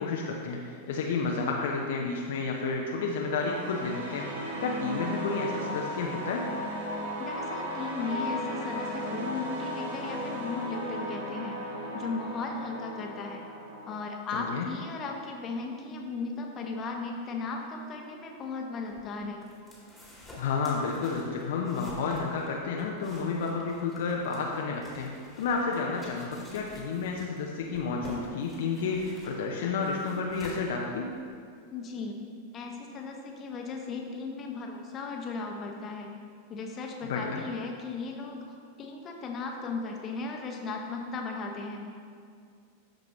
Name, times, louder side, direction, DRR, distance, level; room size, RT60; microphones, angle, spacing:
voice 1, 0.0-6.5 14.3-14.7 20.3-31.1 37.0-37.4, left 4 dB, 55° left, 0 dB, 0.7 m, -31 dB
sound 1, 2.9-14.0, equal, 60° right, 1.7 m, -36 dB
voice 2, 7.2-11.6 11.9-13.4 13.9-19.4 31.7-32.2 32.5-36.1 36.5-38.4 38.8-41.8, left 4 dB, 30° left, 1 dB, 1.0 m, -36 dB
sound 2, 18.9-31.3, left 1 dB, ahead, 2.1 m, -49 dB
13.0 x 5.1 x 3.1 m, 2.2 s
figure-of-eight pair, 90°, 0 cm